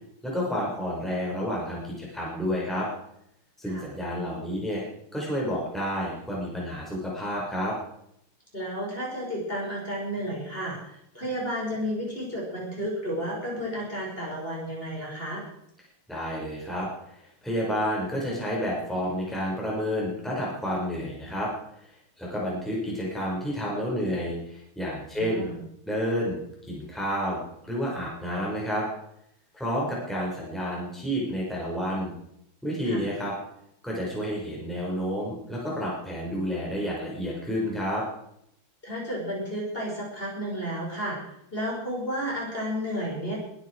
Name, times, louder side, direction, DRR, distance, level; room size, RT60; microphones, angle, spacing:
voice 1, 0.2-2.9 3.6-4.8 5.1-7.7 16.1-16.9 17.2-21.5 22.2-25.5 25.9-26.4 26.7-28.9 29.5-32.1 32.6-33.3 33.8-38.0, equal, ahead, -5 dB, 5.7 m, -30 dB
voice 2, 8.5-15.4 25.1-25.6 32.8-33.0 38.8-41.2 41.5-43.4, equal, 25° left, -4 dB, 6.5 m, -32 dB
22.5 x 12.0 x 4.9 m, 0.75 s
omnidirectional pair, 2.4 m